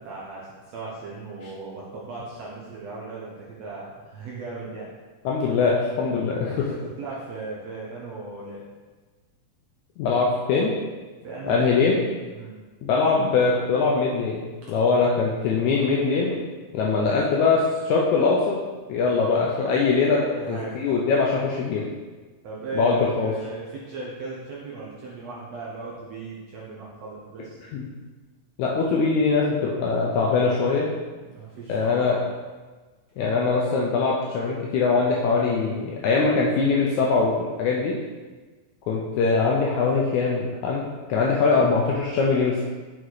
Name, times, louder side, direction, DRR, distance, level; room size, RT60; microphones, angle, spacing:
voice 1, 0.0-4.9 6.5-6.7 7.0-8.6 11.2-12.0 12.3-12.6 20.2-20.8 22.4-27.6 31.3-32.3, right 3 dB, 70° right, -5 dB, 1.6 m, -37 dB
voice 2, 5.3-6.7 10.0-10.7 11.4-12.0 12.8-16.4 16.7-18.6 18.9-20.2 20.5-21.9 22.8-23.3 27.7-27.9 28.6-30.9 31.7-32.2 33.2-38.0 38.9-42.6, left 4 dB, 80° left, -2 dB, 1.7 m, -22 dB
6.4 x 4.8 x 3.9 m, 1.3 s
omnidirectional pair, 3.9 m